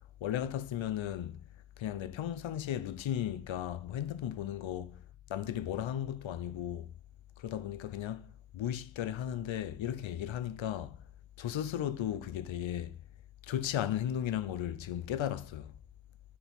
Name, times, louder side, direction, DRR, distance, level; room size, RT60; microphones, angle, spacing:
voice 1, 0.2-1.4 1.8-5.0 5.3-6.9 7.4-11.0 11.4-13.0 13.5-15.7, left 11 dB, 85° left, 0.7 m, -35 dB
9.8 x 6.0 x 3.6 m
wide cardioid pair, 155°, 45 cm